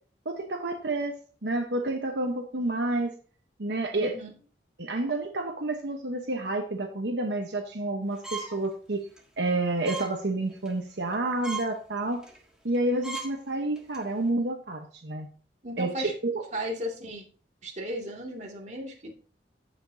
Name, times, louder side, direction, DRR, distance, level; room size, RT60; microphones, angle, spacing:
voice 1, 0.2-3.1 3.6-4.2 4.8-9.0 9.4-12.2 12.6-15.3 15.8-16.5, right 2 dB, 75° right, 3 dB, 1.1 m, -29 dB
voice 2, 4.0-4.3 15.6-16.1 16.5-17.2 17.6-19.1, equal, 40° right, -1 dB, 2.3 m, -35 dB
sound 1, 8.2-8.6 9.0-9.2 9.8-10.1 10.5-10.8 11.1-11.2 11.4-11.7 12.2-12.4 12.7-12.8 13.0-13.3 13.8-14.0, right 3 dB, 5° right, 1.7 m, -36 dB
14.5 x 5.2 x 2.8 m, 0.42 s
head